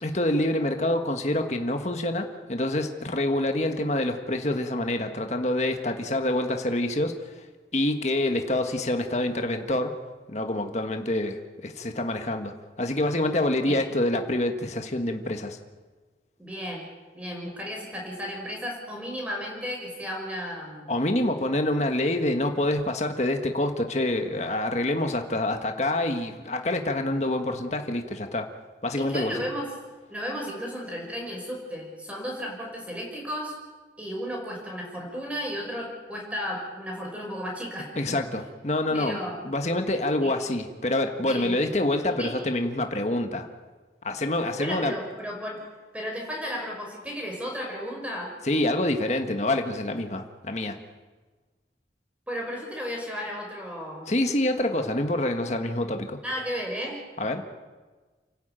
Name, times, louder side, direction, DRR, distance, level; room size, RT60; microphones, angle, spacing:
voice 1, 0.0-7.1 7.7-9.9 10.3-15.6 20.9-28.5 28.8-29.3 38.0-39.2 39.4-43.5 44.0-44.9 48.4-50.8 54.1-56.2 57.2-57.4, left 1 dB, 40° left, 5 dB, 1.7 m, -26 dB
voice 2, 16.4-20.9 29.0-29.7 30.1-33.6 34.0-38.2 38.9-39.4 40.2-40.3 41.2-41.6 42.2-42.3 44.6-45.7 45.9-48.3 52.3-54.1 56.2-57.0, equal, 10° right, 0 dB, 5.4 m, -34 dB
29.5 x 12.0 x 9.1 m, 1.4 s
head